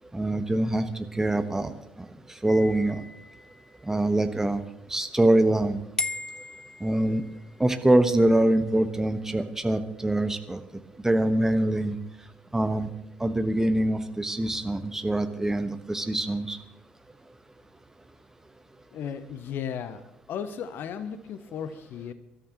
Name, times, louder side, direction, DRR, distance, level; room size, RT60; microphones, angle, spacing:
voice 1, 0.1-1.7 2.4-3.0 3.8-4.6 4.9-5.8 6.8-7.2 7.6-10.6 11.0-12.0 12.5-12.9 13.2-16.6, right 1 dB, 10° right, 8 dB, 1.2 m, -24 dB
sound 1, 2.5-4.0 6.0-7.6, left 3 dB, 15° left, 0.6 m, -37 dB
voice 2, 18.9-22.1, left 8 dB, 45° left, 13 dB, 0.9 m, -35 dB
26.0 x 13.0 x 3.0 m, 0.78 s
figure-of-eight pair, 55°, 5 cm